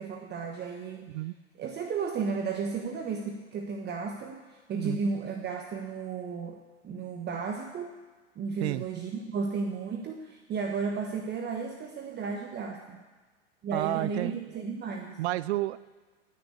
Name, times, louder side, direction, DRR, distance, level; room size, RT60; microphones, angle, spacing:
voice 1, 0.0-1.1 1.6-8.0 8.4-13.0 13.6-15.2, right 5 dB, 30° right, 3 dB, 1.3 m, -34 dB
voice 2, 13.7-14.3 15.2-15.8, right 16 dB, 60° right, 17 dB, 0.5 m, -30 dB
15.0 x 6.7 x 8.4 m, 1.3 s
hypercardioid pair, 105°, 37 cm